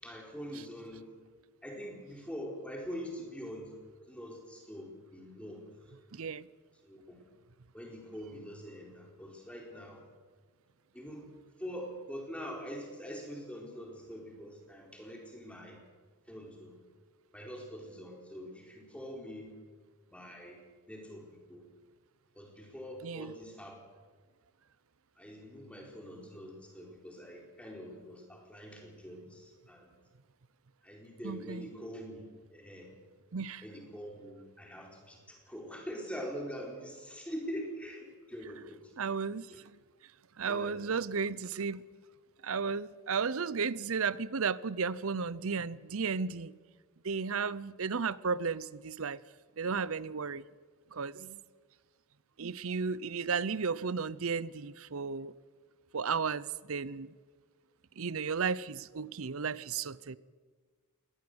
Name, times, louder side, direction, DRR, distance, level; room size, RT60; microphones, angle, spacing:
voice 1, 0.0-1.0 1.6-3.8 4.1-5.6 6.8-7.3 7.7-10.0 10.9-11.3 11.6-15.8 16.3-16.8 17.3-19.5 20.1-20.6 20.9-21.6 22.4-23.8 25.2-29.9 30.8-32.2 32.5-32.9 33.6-39.1 39.5-39.6 40.5-40.8, equal, 5° left, 0 dB, 4.2 m, -44 dB
voice 2, 6.1-6.5 23.0-23.3 31.2-31.7 33.3-33.6 39.0-39.7 40.4-41.8 42.4-46.6 47.0-49.2 49.6-50.4 50.9-51.4 52.4-55.3 55.9-57.1 58.0-60.2, right 5 dB, 65° right, 19 dB, 0.7 m, -34 dB
20.5 x 18.0 x 7.9 m, 1.5 s
head